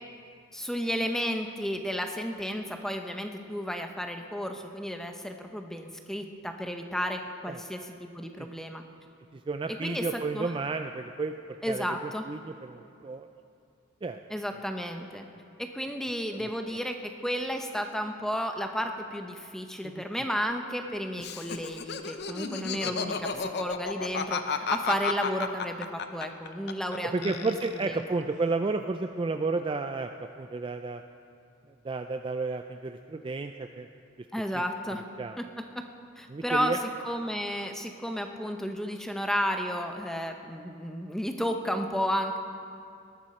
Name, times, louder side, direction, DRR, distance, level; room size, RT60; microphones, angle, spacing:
voice 1, 0.5-8.8 9.8-10.0 10.3-10.5 11.6-12.3 14.3-15.2 15.6-27.5 34.3-35.0 35.4-35.5 36.2-36.7 37.0-42.4, equal, ahead, 5 dB, 0.8 m, -32 dB
voice 2, 9.3-13.3 14.0-14.2 16.3-16.5 19.8-19.9 23.0-23.2 27.0-30.1 30.4-31.0 31.8-33.9 34.5-34.6 35.2-35.4 36.3-36.8, right 3 dB, 25° right, 7 dB, 0.3 m, -32 dB
Laughter, 21.2-27.0 27.2-28.0, left 5 dB, 55° left, 0.7 m, -32 dB
19.0 x 13.0 x 4.3 m, 2.4 s
head